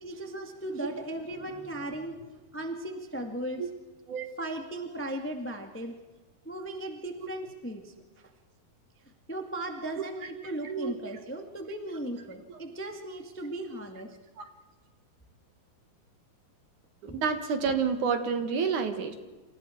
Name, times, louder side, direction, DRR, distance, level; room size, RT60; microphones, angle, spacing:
voice 1, 0.0-2.2 2.5-3.6 4.4-5.9 6.4-8.3 9.3-14.2 17.1-17.2, right 1 dB, 5° left, 4 dB, 0.9 m, -37 dB
voice 2, 10.6-10.9 12.5-12.6 14.4-14.5 17.0-19.2, right 6 dB, 60° right, 8 dB, 2.7 m, -29 dB
28.5 x 27.0 x 4.6 m, 1.2 s
omnidirectional pair, 4.3 m